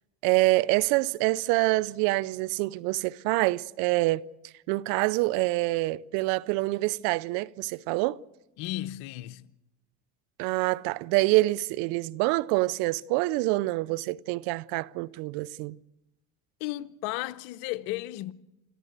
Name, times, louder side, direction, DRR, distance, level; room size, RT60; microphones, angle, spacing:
voice 1, 0.2-4.3 4.7-8.2 10.4-15.8, right 20 dB, 80° right, 0.6 m, -26 dB
voice 2, 8.6-9.5 16.6-18.3, left 16 dB, 80° left, 0.9 m, -34 dB
27.5 x 14.5 x 8.1 m
supercardioid pair, 80°, 35 cm